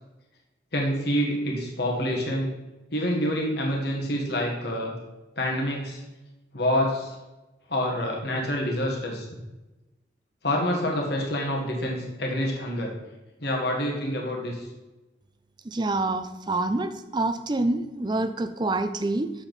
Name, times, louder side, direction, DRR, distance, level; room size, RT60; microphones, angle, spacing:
voice 1, 0.7-2.5 2.9-4.9 5.4-6.0 6.5-7.1 7.7-9.3 10.4-12.9 13.4-14.7, equal, 60° left, 0 dB, 1.6 m, -27 dB
voice 2, 15.7-19.3, right 2 dB, 25° right, 10 dB, 0.5 m, -27 dB
7.1 x 7.1 x 4.1 m, 1.1 s
head